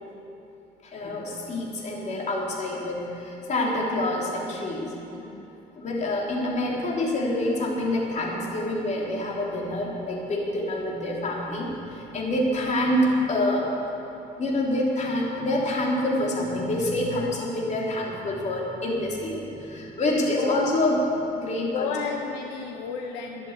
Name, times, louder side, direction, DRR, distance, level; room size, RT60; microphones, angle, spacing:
voice 1, 0.8-4.9 5.8-13.7 14.4-21.0 21.3-21.9, left 1 dB, 45° left, -2 dB, 3.4 m, -27 dB
voice 2, 5.1-5.4 17.0-17.3 20.4-20.7 21.6-23.5, left 6 dB, 90° left, 2 dB, 1.1 m, -33 dB
13.0 x 10.5 x 8.3 m, 3.0 s
cardioid pair, 110°, 17 cm